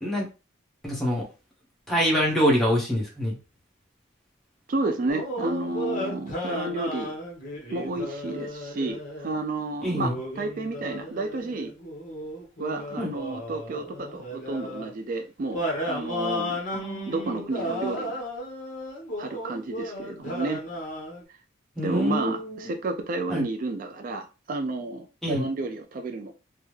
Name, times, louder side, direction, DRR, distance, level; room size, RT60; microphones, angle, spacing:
voice 1, 0.8-1.2 1.9-3.4 9.8-10.2 13.0-13.1 16.7-17.4 21.8-22.7 23.3-23.5 25.2-25.5, equal, ahead, 1.0 m, -25 dB
voice 2, 4.7-7.2 7.7-11.7 12.6-16.6 17.1-18.2 19.2-20.6 21.8-26.3, right 2 dB, 45° right, 0.3 m, -31 dB
sound 1, 5.1-9.4 9.9-14.9 15.5-21.2, equal, 45° left, 1.0 m, -34 dB
3.4 x 2.0 x 3.1 m
head